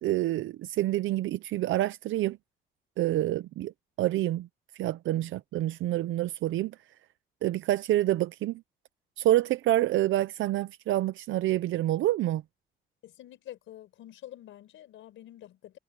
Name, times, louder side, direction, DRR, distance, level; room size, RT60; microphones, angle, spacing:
voice 1, 0.0-2.4 3.0-3.7 4.0-4.5 4.8-6.8 7.4-8.6 9.2-12.4, right 14 dB, 80° right, 0.7 m, -27 dB
voice 2, 13.0-15.8, left 12 dB, 80° left, 5.0 m, -47 dB
cardioid pair, 90°, 20 cm